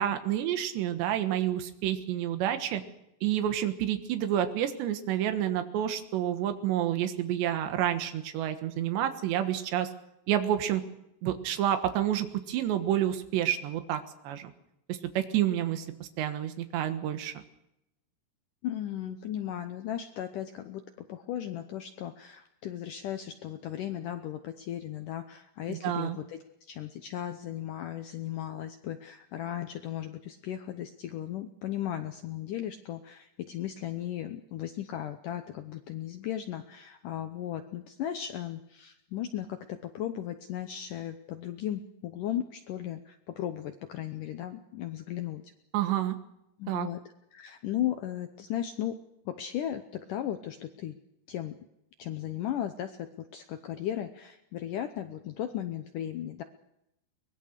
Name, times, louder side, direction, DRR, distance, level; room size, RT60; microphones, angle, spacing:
voice 1, 0.0-2.8 3.2-9.9 10.3-10.8 11.2-14.5 14.9-17.4 25.7-26.2 45.7-46.2 46.7-46.9, right 11 dB, 90° right, 8 dB, 3.6 m, -29 dB
voice 2, 18.6-45.4 46.6-47.0 47.3-49.0 49.3-51.0 51.3-51.6 52.0-56.4, left 11 dB, 75° left, 8 dB, 1.9 m, -36 dB
23.0 x 20.0 x 6.6 m, 0.83 s
omnidirectional pair, 4.9 m